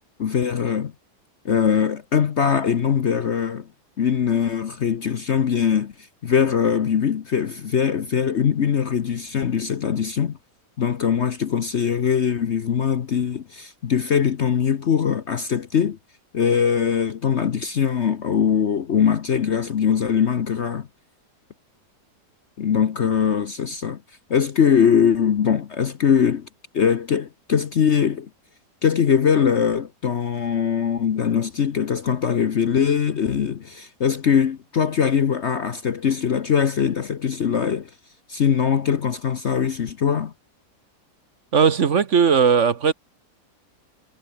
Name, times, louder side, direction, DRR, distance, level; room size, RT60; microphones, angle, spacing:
voice 1, 0.2-0.9 1.4-3.7 4.0-10.4 10.8-16.0 16.3-20.9 22.6-24.0 24.3-26.5 26.7-28.3 28.8-37.9 38.3-40.3, left 7 dB, 50° left, 1.0 m, -21 dB
voice 2, 41.5-42.9, right 6 dB, 50° right, 1.4 m, -17 dB
omnidirectional pair, 1.8 m